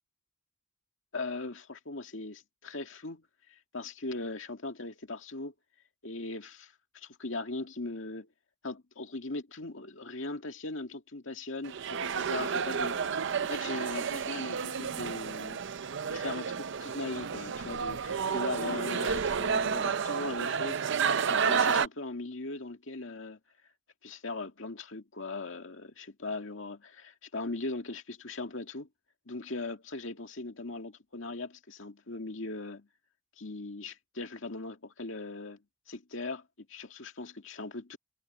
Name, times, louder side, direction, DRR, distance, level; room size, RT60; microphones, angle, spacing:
voice 1, 1.1-5.5 6.0-8.3 8.6-13.0 13.4-15.6 16.1-20.8 21.3-23.4 24.0-28.9 29.3-32.9 33.4-35.6 35.9-38.0, left 2 dB, 65° left, 2.2 m, -39 dB
sound 1, 11.6-21.9, right 6 dB, 65° right, 0.6 m, -31 dB
head